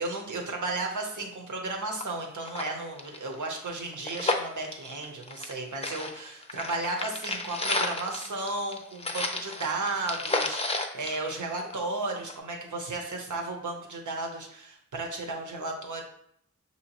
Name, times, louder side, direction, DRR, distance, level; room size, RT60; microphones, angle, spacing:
voice 1, 0.0-16.0, right 2 dB, 75° right, 2 dB, 0.9 m, -34 dB
sound 1, 1.7-1.8 2.0-2.1 2.4-5.6 5.8-11.9 12.3-12.4, left 2 dB, 20° left, 0.5 m, -32 dB
5.9 x 2.8 x 2.9 m, 0.70 s
wide cardioid pair, 70°, 30 cm